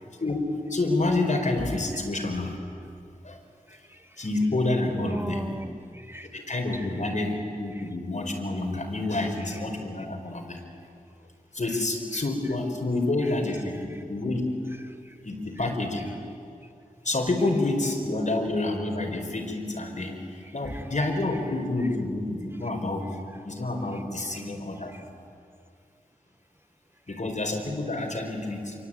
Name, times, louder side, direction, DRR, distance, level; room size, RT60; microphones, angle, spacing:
voice 1, 0.7-2.5 3.2-3.4 4.2-5.5 6.3-10.6 11.5-14.5 15.2-16.1 17.0-23.1 23.4-24.9 27.1-28.7, left 2 dB, 55° left, 4.7 m, -28 dB
voice 2, 3.7-4.1 4.9-6.5 7.7-7.8 14.8-15.1 20.6-20.9 24.3-24.4 24.9-25.0 27.1-27.2, right 1 dB, 15° right, 0.9 m, -39 dB
28.0 x 23.5 x 9.0 m
wide cardioid pair, 70°, 15 cm